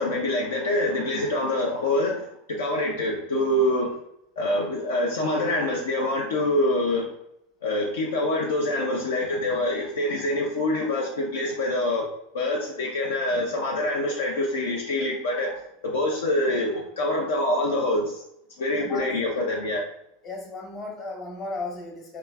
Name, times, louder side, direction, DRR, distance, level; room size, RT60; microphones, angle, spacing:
voice 1, 0.0-3.9 4.4-7.1 7.6-12.0 12.3-18.2 18.6-19.8, left 1 dB, 70° left, -2 dB, 0.5 m, -25 dB
voice 2, 18.8-19.2 20.2-22.2, left 3 dB, 35° left, 0 dB, 1.1 m, -35 dB
3.0 x 2.3 x 3.4 m, 0.77 s
figure-of-eight pair, 85°, 0 cm